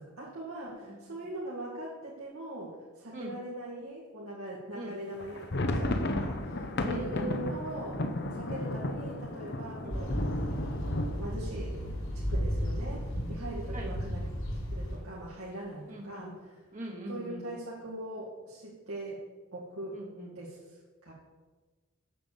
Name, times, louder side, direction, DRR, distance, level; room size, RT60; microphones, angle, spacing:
voice 1, 0.0-8.0 8.3-10.4 10.8-14.3 14.7-16.4 17.1-19.3 19.5-20.0 20.3-21.1, right 1 dB, 80° right, -6 dB, 2.0 m, -41 dB
sound 1, 5.2-12.9 13.2-13.3 13.6-13.8 14.3-14.8, left 1 dB, 50° left, 0.7 m, -34 dB
voice 2, 6.9-7.3 9.8-10.0 13.7-13.9 15.9-16.3 16.7-17.4 19.9-20.3, right 1 dB, 35° right, -1 dB, 1.2 m, -41 dB
sound 2, 9.9-15.0, equal, 70° left, 3.7 m, -34 dB
7.6 x 6.8 x 7.3 m, 1.3 s
head